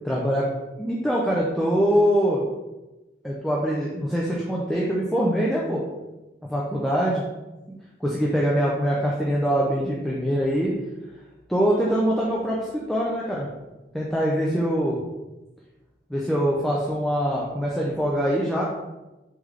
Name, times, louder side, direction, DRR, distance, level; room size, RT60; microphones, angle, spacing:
voice 1, 0.0-0.4 0.8-2.4 3.2-5.8 6.5-7.2 8.0-10.7 11.5-13.5 13.9-15.0 16.1-18.6, equal, ahead, -5 dB, 0.4 m, -23 dB
3.3 x 3.1 x 3.7 m, 1.1 s
head